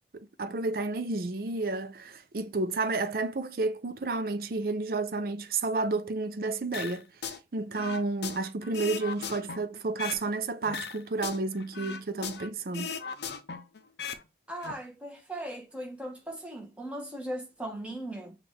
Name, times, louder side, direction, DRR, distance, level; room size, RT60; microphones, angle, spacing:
voice 1, 0.1-12.9, right 3 dB, 55° right, 0.5 m, -31 dB
sound 1, 6.7-7.4 7.7-10.3 10.6-12.5 12.7-14.2 14.5-14.7, left 6 dB, 70° left, 0.5 m, -38 dB
voice 2, 14.5-18.3, right 1 dB, 5° right, 1.0 m, -38 dB
6.0 x 2.5 x 3.2 m
head